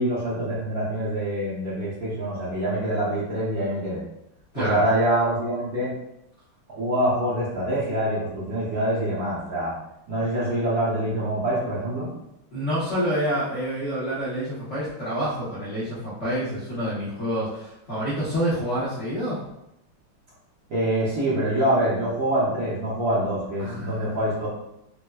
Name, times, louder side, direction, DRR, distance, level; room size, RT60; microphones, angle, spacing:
voice 1, 0.0-4.0 4.5-5.9 6.7-9.7 10.1-12.1 20.7-24.5, right 1 dB, 60° right, -9 dB, 1.0 m, -25 dB
voice 2, 4.5-4.9 12.5-19.4 23.6-24.2, equal, 65° left, -9 dB, 0.7 m, -28 dB
4.5 x 2.1 x 2.2 m, 0.83 s
omnidirectional pair, 2.4 m